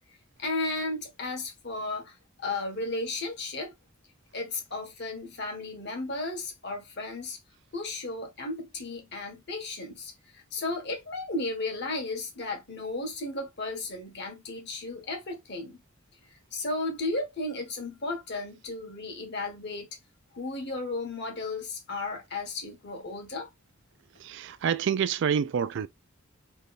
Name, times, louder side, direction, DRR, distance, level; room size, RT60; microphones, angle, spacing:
voice 1, 0.4-3.7 4.3-7.4 7.7-15.8 16.5-19.9 20.3-23.5, left 2 dB, 55° left, 1.4 m, -34 dB
voice 2, 24.2-25.9, right 7 dB, 55° right, 0.3 m, -27 dB
3.4 x 2.4 x 4.0 m
head